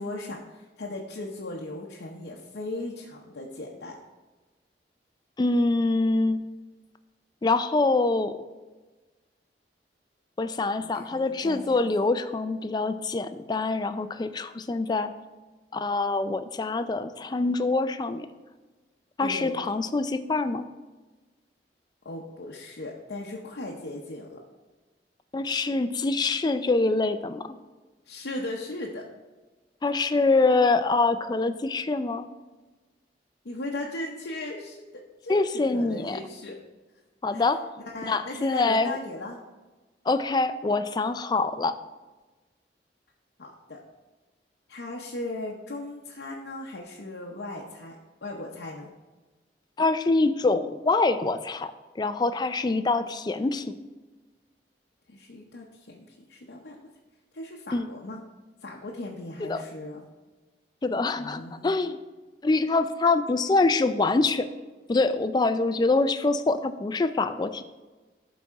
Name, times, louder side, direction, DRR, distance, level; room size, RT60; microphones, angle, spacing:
voice 1, 0.0-4.0 10.8-11.8 19.2-19.5 22.0-24.4 28.1-29.0 33.4-36.6 37.3-37.4 37.9-39.4 43.4-43.8 44.7-48.0 48.2-48.9 55.1-56.8 57.3-58.2 58.6-60.0 61.2-61.8, left 2 dB, 75° left, -2 dB, 0.7 m, -37 dB
voice 2, 5.4-6.4 7.4-8.4 10.4-15.1 15.7-18.3 19.2-20.7 25.3-27.4 29.8-32.3 35.3-36.2 37.2-37.6 38.1-39.0 40.1-41.7 49.8-53.7 57.7-57.9 59.5-59.6 60.8-62.0 62.4-64.5 64.9-67.6, left 3 dB, 25° left, 11 dB, 0.3 m, -25 dB
12.0 x 4.1 x 3.6 m, 1.2 s
head